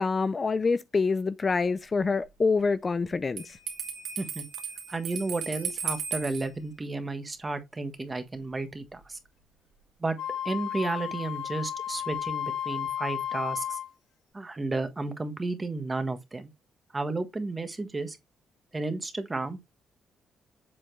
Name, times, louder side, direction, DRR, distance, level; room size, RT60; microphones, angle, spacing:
voice 1, 0.0-3.6, left 4 dB, 30° left, 0.4 m, -26 dB
Bell, 3.4-6.5, right 7 dB, 85° right, 2.2 m, -35 dB
voice 2, 4.9-9.2 10.0-10.2 10.4-13.8 14.3-16.5 16.9-18.2 18.7-19.6, right 3 dB, 20° right, 1.3 m, -32 dB
Wind instrument woodwind instrument, 10.2-13.9, left 10 dB, 90° left, 2.2 m, -33 dB
7.6 x 4.3 x 3.2 m
cardioid pair, 90°, 0 cm